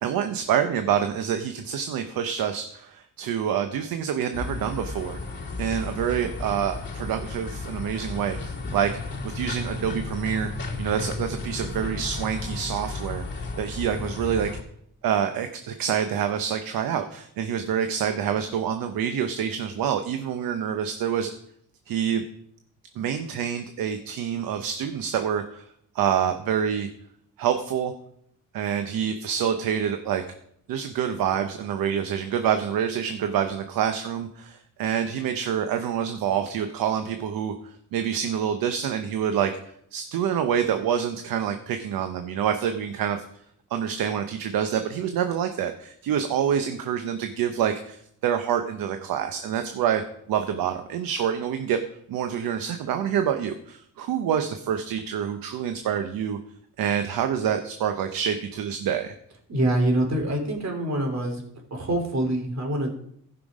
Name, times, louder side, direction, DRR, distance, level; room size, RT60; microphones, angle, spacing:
voice 1, 0.0-5.2 5.6-8.9 9.2-14.5 15.0-21.3 21.9-22.2 23.0-25.6 25.9-26.9 27.4-27.9 28.5-30.2 30.7-37.5 37.9-39.5 39.9-43.2 43.7-50.0 50.3-51.8 52.1-56.4 56.8-59.2, right 8 dB, 85° right, 7 dB, 0.9 m, -27 dB
sound 1, 4.3-14.6, left 3 dB, 30° left, 2.8 m, -34 dB
voice 2, 59.5-61.4 61.7-62.9, right 1 dB, 50° right, 2 dB, 3.4 m, -25 dB
15.0 x 6.0 x 5.0 m, 0.69 s
cardioid pair, 75°, 34 cm